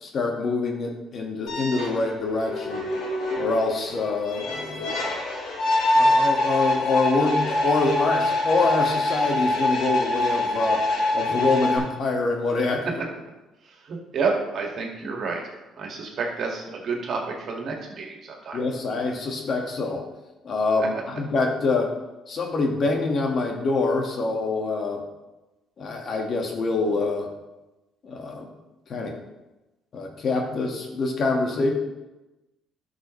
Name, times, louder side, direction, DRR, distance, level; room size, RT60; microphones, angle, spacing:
voice 1, 0.0-2.8 3.4-5.1 5.9-10.8 11.1-13.0 18.5-20.0 20.4-21.9 22.3-25.0 25.8-27.3 28.0-28.5 28.9-29.1 29.9-31.7, left 3 dB, 55° left, 2 dB, 1.7 m, -25 dB
sound 1, 1.5-11.8, left 1 dB, 80° left, 3.1 m, -24 dB
voice 2, 13.8-15.4 15.8-18.6, right 4 dB, 60° right, 0 dB, 2.0 m, -29 dB
11.5 x 6.2 x 3.2 m, 1.1 s
supercardioid pair, 75°, 0 cm